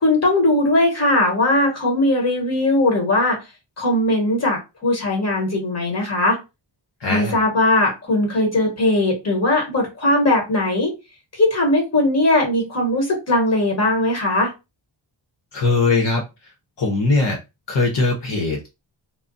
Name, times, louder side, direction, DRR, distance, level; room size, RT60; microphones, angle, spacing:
voice 1, 0.0-3.4 3.8-6.4 7.1-10.9 11.4-14.5, left 1 dB, 35° left, 1 dB, 1.2 m, -19 dB
voice 2, 7.0-7.4 15.5-16.2 16.8-17.4 17.7-18.7, left 3 dB, 60° left, -2 dB, 0.9 m, -20 dB
2.3 x 2.1 x 3.9 m, 0.25 s
wide cardioid pair, 155°, 48 cm